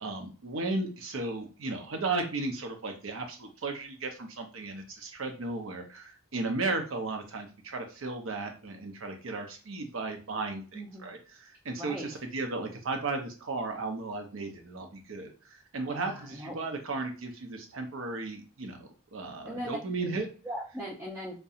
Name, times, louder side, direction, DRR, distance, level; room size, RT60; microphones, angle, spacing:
voice 1, 0.0-15.3 15.7-20.3, right 3 dB, 70° right, 5 dB, 0.6 m, -35 dB
voice 2, 10.7-11.1 11.8-12.2 15.8-16.5 19.4-21.4, equal, 15° right, -6 dB, 0.5 m, -40 dB
2.7 x 2.1 x 2.4 m, 0.36 s
head